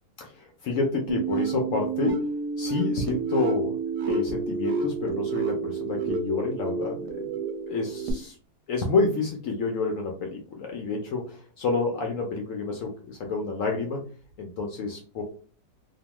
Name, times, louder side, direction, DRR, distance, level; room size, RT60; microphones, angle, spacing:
voice 1, 0.2-2.2 2.6-3.8 4.1-7.3 7.7-8.4 8.7-14.1 14.4-15.2, left 3 dB, 75° left, 1 dB, 0.7 m, -29 dB
sound 1, 1.1-8.1, right 4 dB, 75° right, 1.1 m, -29 dB
2.9 x 2.1 x 2.9 m, 0.40 s
omnidirectional pair, 1.9 m